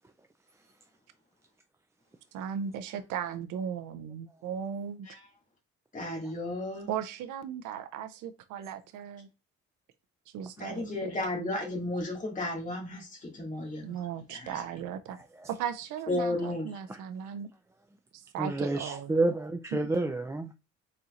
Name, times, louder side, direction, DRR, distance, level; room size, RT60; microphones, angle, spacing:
voice 1, 2.3-5.1 6.9-9.3 10.3-11.1 13.8-15.2 15.5-17.5 18.1-19.1, right 8 dB, 85° right, 0.5 m, -37 dB
voice 2, 5.9-6.9 10.6-13.8 14.3-14.6 16.1-16.7, left 2 dB, 25° left, 2.0 m, -33 dB
voice 3, 15.1-15.5 16.9-17.0 18.4-20.5, right 2 dB, 10° right, 0.3 m, -30 dB
4.3 x 4.0 x 2.4 m
cardioid pair, 90°, 30 cm